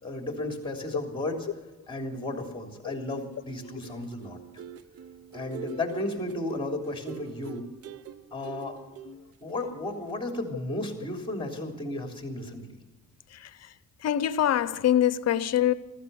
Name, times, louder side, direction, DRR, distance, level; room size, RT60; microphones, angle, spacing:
voice 1, 0.0-1.4 1.9-4.4 5.3-7.7 8.3-8.8 9.4-12.6, left 2 dB, 15° left, 3.3 m, -33 dB
sound 1, 3.3-10.5 10.8-11.0, right 9 dB, 50° right, 0.8 m, -45 dB
voice 2, 13.3-13.7 14.0-15.7, left 11 dB, 60° left, 0.8 m, -26 dB
15.0 x 13.5 x 7.0 m
cardioid pair, 90°, 30 cm